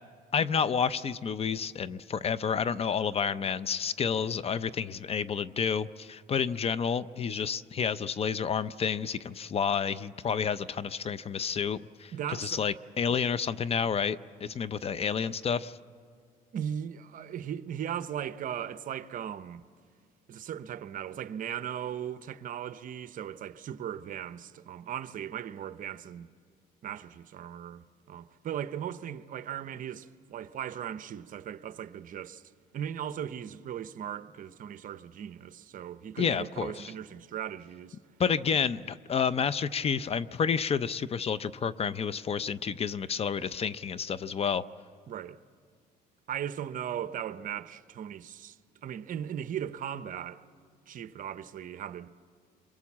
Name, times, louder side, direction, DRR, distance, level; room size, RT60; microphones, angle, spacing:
voice 1, 0.3-12.1 12.4-15.8 36.2-36.7 38.2-44.6, left 6 dB, 35° left, 0.6 m, -30 dB
voice 2, 12.1-12.8 13.1-13.2 16.5-19.6 20.3-26.3 26.8-32.4 32.7-38.0 45.1-45.4 46.3-50.4 50.9-52.1, right 9 dB, 50° right, 0.8 m, -38 dB
28.5 x 22.5 x 7.3 m
cardioid pair, 110°, 17 cm